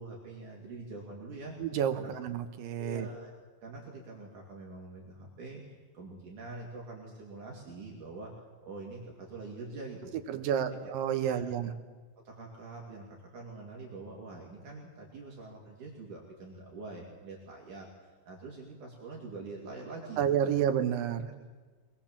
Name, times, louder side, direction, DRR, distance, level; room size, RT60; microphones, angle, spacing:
voice 1, 0.0-1.6 2.0-2.2 2.8-3.3 3.6-8.3 8.6-10.6 11.2-11.5 12.3-20.5, right 3 dB, 65° right, -2 dB, 4.1 m, -45 dB
voice 2, 1.6-3.1 10.3-11.7 20.2-21.3, right 9 dB, 85° right, 8 dB, 3.0 m, -30 dB
24.0 x 20.5 x 7.4 m, 1.4 s
omnidirectional pair, 3.8 m